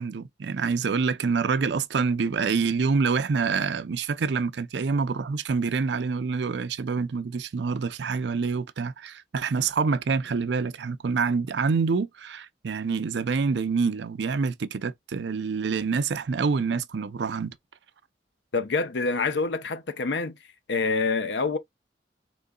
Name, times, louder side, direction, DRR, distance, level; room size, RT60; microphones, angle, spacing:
voice 1, 0.0-17.5, right 5 dB, 70° right, 0.5 m, -26 dB
voice 2, 18.5-20.4 20.7-21.6, left 4 dB, 75° left, 0.7 m, -26 dB
4.5 x 3.8 x 2.3 m
head